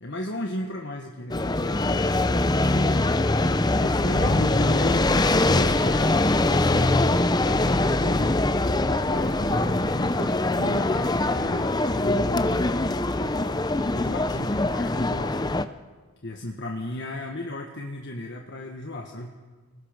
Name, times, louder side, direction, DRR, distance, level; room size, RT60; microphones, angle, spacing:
voice 1, 0.0-3.2 3.8-8.3 8.9-13.0 13.9-15.4 16.2-19.3, left 1 dB, 55° left, 2 dB, 1.6 m, -35 dB
sound 1, 1.3-15.6, left 2 dB, 20° left, 0.6 m, -23 dB
30.0 x 19.5 x 5.3 m, 1.4 s
head